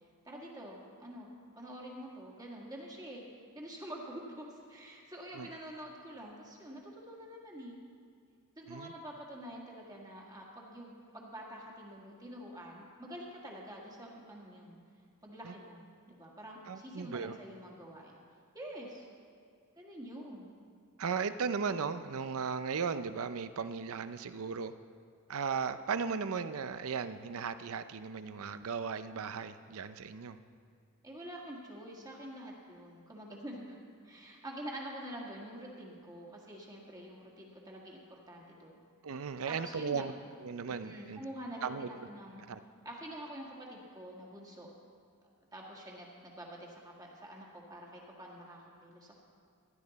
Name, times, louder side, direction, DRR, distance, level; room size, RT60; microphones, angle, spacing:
voice 1, 0.2-1.3 1.5-3.2 3.5-7.8 8.6-14.8 15.2-18.2 18.5-19.1 19.7-20.6 31.0-38.8 39.4-40.1 40.7-42.4 42.8-44.7 45.5-49.2, equal, 15° right, -2 dB, 1.7 m, -47 dB
voice 2, 16.7-17.3 21.0-24.7 25.3-30.4 39.0-40.1 40.4-41.2 41.6-41.9 42.5-42.6, right 5 dB, 65° right, 12 dB, 0.5 m, -36 dB
15.5 x 11.0 x 4.1 m, 2.3 s
head